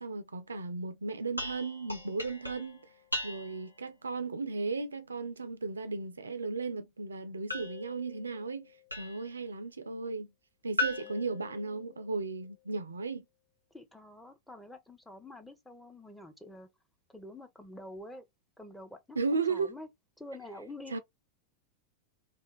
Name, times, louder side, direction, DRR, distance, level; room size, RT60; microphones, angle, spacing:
voice 1, 0.0-2.8 3.2-10.3 10.6-13.2 19.2-19.7 20.9-21.0, right 4 dB, 75° right, 0.3 m, -35 dB
sound 1, 1.4-3.8 7.5-9.4 10.8-12.2, left 2 dB, 85° left, 0.7 m, -38 dB
voice 2, 11.0-12.0 13.7-16.7 17.1-18.2 18.6-19.9 20.2-21.0, left 1 dB, 5° left, 0.6 m, -48 dB
2.4 x 2.4 x 2.9 m
figure-of-eight pair, 90°, 0 cm